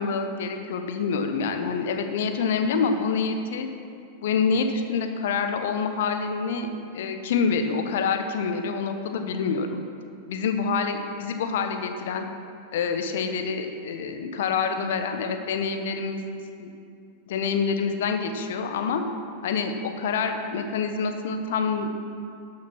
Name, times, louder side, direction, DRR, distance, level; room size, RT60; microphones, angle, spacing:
voice 1, 0.0-3.7 4.2-9.8 10.3-12.2 12.7-16.2 16.6-16.7 17.3-19.0 19.4-21.9, left 5 dB, 55° left, 6 dB, 1.0 m, -27 dB
12.5 x 6.6 x 5.9 m, 2.4 s
figure-of-eight pair, 90°, 0 cm